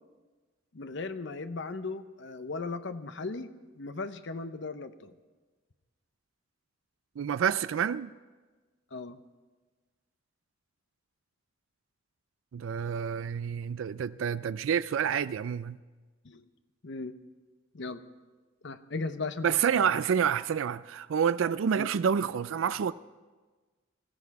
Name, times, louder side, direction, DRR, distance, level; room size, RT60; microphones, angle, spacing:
voice 1, 0.7-5.1 8.9-9.2 16.2-16.5 16.8-17.1 17.7-18.0 18.6-19.5 19.8-19.9 21.8-21.9, left 3 dB, 60° left, 0.8 m, -37 dB
voice 2, 7.2-8.1 12.5-15.8 19.4-22.9, right 7 dB, 80° right, 0.4 m, -28 dB
19.0 x 14.0 x 4.8 m
head